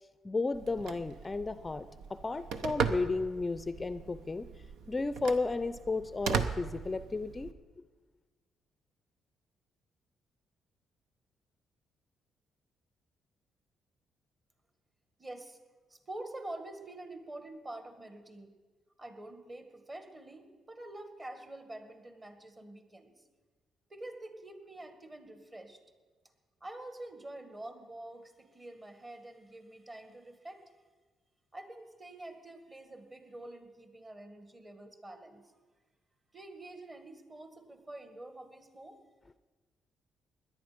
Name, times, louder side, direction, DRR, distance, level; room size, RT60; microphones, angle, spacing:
voice 1, 0.2-4.5 4.9-7.5, left 3 dB, 25° left, 13 dB, 0.5 m, -33 dB
Telephone, 0.5-7.5, right 6 dB, 85° right, 0.8 m, -38 dB
voice 2, 15.2-15.6 15.9-18.6 19.0-23.2 23.9-25.8 26.6-30.6 31.5-35.5 36.3-39.0, right 1 dB, 30° right, 7 dB, 1.8 m, -47 dB
17.5 x 11.0 x 5.1 m, 1.3 s
cardioid pair, 90°, 0 cm